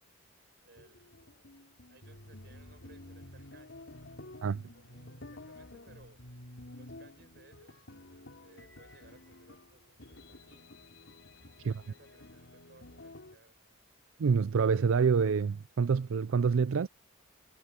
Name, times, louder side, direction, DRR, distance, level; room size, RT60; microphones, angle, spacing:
voice 1, 0.6-1.1 1.9-6.2 6.7-7.9 8.4-10.7 11.5-13.9, right 2 dB, 55° right, 4.7 m, -62 dB
sound 1, 0.8-13.4, left 1 dB, 75° left, 3.9 m, -51 dB
voice 2, 14.2-16.9, right 5 dB, 85° right, 0.4 m, -27 dB
head